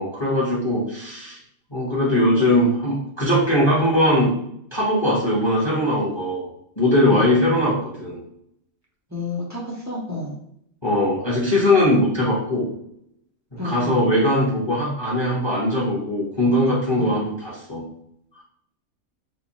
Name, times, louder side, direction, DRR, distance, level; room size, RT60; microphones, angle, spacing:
voice 1, 0.0-1.4 1.7-4.3 4.7-6.5 6.8-8.2 10.8-12.7 13.5-17.8, left 1 dB, 20° left, -6 dB, 1.0 m, -20 dB
voice 2, 9.1-10.3 13.6-14.0 17.0-17.1, left 2 dB, 20° right, -4 dB, 0.5 m, -30 dB
4.4 x 2.3 x 3.0 m, 0.72 s
omnidirectional pair, 1.4 m